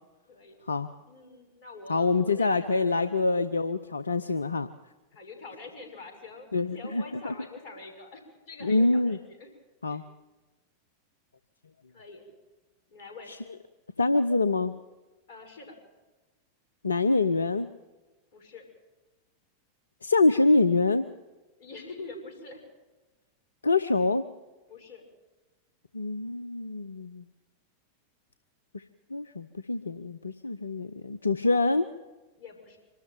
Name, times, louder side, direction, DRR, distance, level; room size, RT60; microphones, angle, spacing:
voice 1, 0.3-3.1 5.1-8.2 8.5-9.5 9.9-10.0 11.9-12.3 12.9-13.3 15.3-15.7 18.3-18.6 21.6-22.6 24.7-25.0 32.4-32.8, left 3 dB, 50° left, 4 dB, 6.0 m, -45 dB
voice 2, 1.9-4.7 6.5-7.3 8.6-9.2 9.8-10.0 13.3-13.4 14.0-14.7 16.8-17.7 20.0-21.0 23.6-24.2 25.9-27.3 28.7-28.8 29.1-31.9, left 3 dB, 75° left, 13 dB, 0.7 m, -25 dB
25.0 x 13.0 x 9.1 m, 1.2 s
figure-of-eight pair, 90°, 0 cm